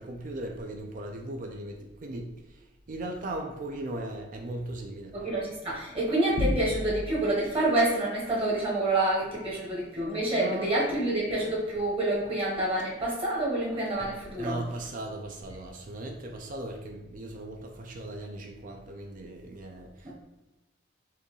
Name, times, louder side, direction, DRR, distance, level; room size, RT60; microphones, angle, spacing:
voice 1, 0.0-5.2 9.5-9.6 10.3-10.8 14.4-20.2, right 1 dB, 45° right, 2 dB, 0.4 m, -38 dB
voice 2, 5.1-14.5 20.0-20.2, right 1 dB, 30° right, -4 dB, 1.1 m, -28 dB
sound 1, 6.4-7.3, left 1 dB, 70° left, 0.6 m, -30 dB
4.7 x 2.3 x 3.1 m, 1.1 s
head